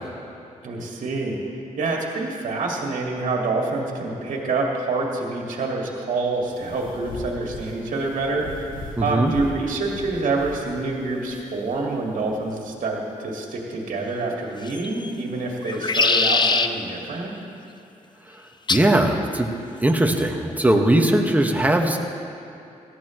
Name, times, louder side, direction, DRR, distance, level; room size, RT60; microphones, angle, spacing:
voice 1, 0.6-1.4 1.8-8.5 9.0-17.3, right 3 dB, 70° right, -1 dB, 2.0 m, -26 dB
sound 1, 6.3-12.7, left 2 dB, 80° left, 1.4 m, -40 dB
voice 2, 9.0-9.3 18.7-19.5 19.8-22.0, right 1 dB, 10° right, 2 dB, 1.5 m, -19 dB
sound 2, 14.6-15.1 15.6-16.7 18.7-18.9 19.9-20.3, left 4 dB, 30° left, 0.7 m, -22 dB
18.0 x 12.5 x 3.1 m, 2.8 s
cardioid pair, 60°, 14 cm